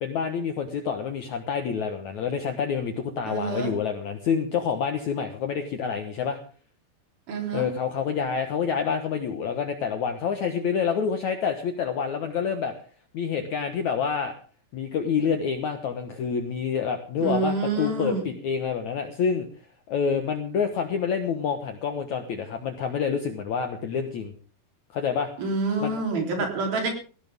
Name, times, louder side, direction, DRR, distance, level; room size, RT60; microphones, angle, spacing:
voice 1, 0.0-6.4 7.5-12.7 13.1-14.3 14.7-19.5 19.9-24.3 24.9-25.3 25.8-25.9 26.4-26.5, left 6 dB, 65° left, 6 dB, 2.0 m, -27 dB
voice 2, 3.3-3.7 7.3-7.7 17.2-18.3 25.4-26.9, right 3 dB, 60° right, 2 dB, 5.4 m, -27 dB
19.0 x 16.5 x 3.6 m, 0.39 s
omnidirectional pair, 4.9 m